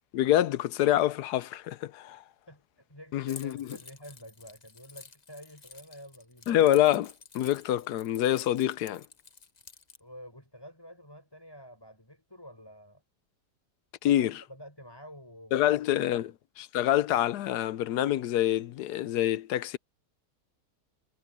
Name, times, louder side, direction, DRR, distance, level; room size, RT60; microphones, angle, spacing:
voice 1, 0.1-2.2 3.1-3.7 6.5-9.0 14.0-14.4 15.5-16.3 16.6-19.8, left 12 dB, 80° left, 1.2 m, -26 dB
voice 2, 2.5-6.5 10.0-13.0 14.0-16.3, equal, 15° left, 7.3 m, -49 dB
Keys jangling, 3.3-10.0, left 4 dB, 30° left, 0.9 m, -51 dB
omnidirectional pair, 1.8 m